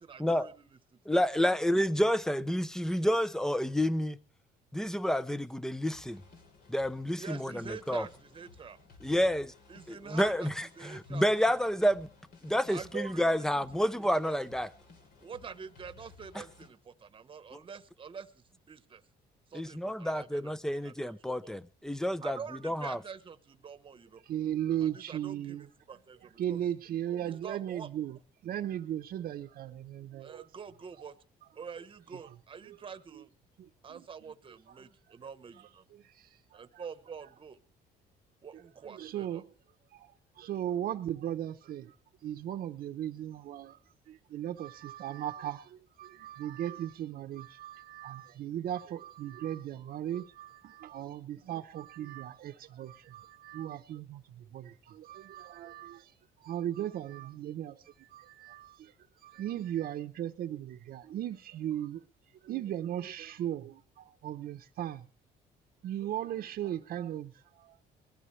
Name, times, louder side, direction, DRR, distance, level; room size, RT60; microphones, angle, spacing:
voice 1, 0.0-0.8 7.1-8.8 9.7-10.5 10.7-11.4 12.7-14.4 15.2-19.0 19.5-21.5 22.2-24.2 24.8-26.6 27.2-27.9 30.2-31.2 31.5-33.3 33.8-35.8 36.5-37.6 38.4-39.4, right 6 dB, 30° right, 1.1 m, -46 dB
voice 2, 1.1-4.2 4.7-6.2 6.7-8.1 9.0-9.5 9.9-12.1 12.4-14.7 17.5-17.6 19.5-22.4 22.6-23.0, equal, 5° left, 0.6 m, -29 dB
sound 1, 5.5-5.6 5.9-16.7, left 4 dB, 65° left, 3.9 m, -57 dB
voice 3, 24.3-25.7 26.4-28.2 28.4-30.4 32.7-32.8 33.6-34.0 36.2-36.3 38.8-39.5 39.9-40.1 40.4-41.9 42.2-43.8 44.1-56.1 56.4-58.9 59.2-62.0 62.4-65.0 65.8-67.8, right 11 dB, 60° right, 0.9 m, -37 dB
21.0 x 14.0 x 3.2 m
cardioid pair, 110°, 17 cm